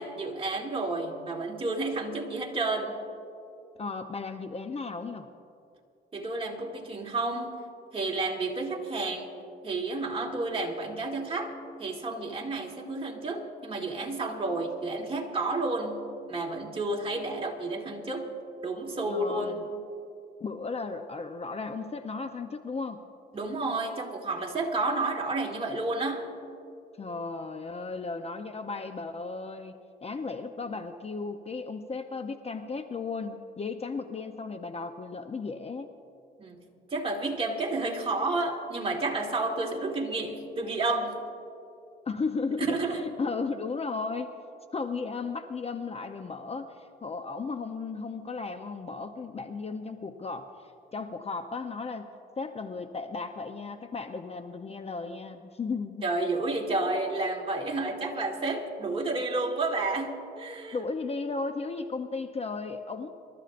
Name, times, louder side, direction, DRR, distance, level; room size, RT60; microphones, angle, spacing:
voice 1, 0.0-3.0 6.1-7.6 7.9-9.3 9.6-11.5 11.8-18.3 18.6-19.7 23.3-26.3 36.4-36.6 36.9-41.2 42.6-43.0 56.0-60.8, right 2 dB, 30° right, -1 dB, 2.3 m, -31 dB
voice 2, 3.8-5.3 19.1-19.6 20.4-23.0 27.0-35.9 42.0-44.3 44.7-50.5 50.9-52.1 52.4-56.1 60.7-63.1, left 4 dB, 30° left, 8 dB, 0.7 m, -35 dB
26.5 x 13.5 x 2.5 m, 2.5 s
cardioid pair, 90°, 20 cm